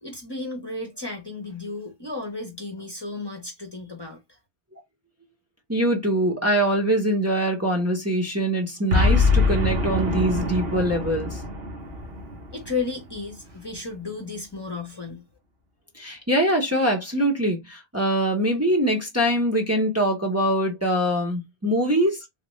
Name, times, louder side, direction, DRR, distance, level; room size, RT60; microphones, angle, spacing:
voice 1, 0.0-4.4 12.5-15.2, left 3 dB, 25° left, 0.8 m, -33 dB
voice 2, 5.7-11.4 15.9-22.2, right 1 dB, 15° right, 0.8 m, -23 dB
Boom, 8.9-13.3, left 3 dB, 75° right, 1.2 m, -24 dB
3.5 x 2.4 x 3.1 m
omnidirectional pair, 1.0 m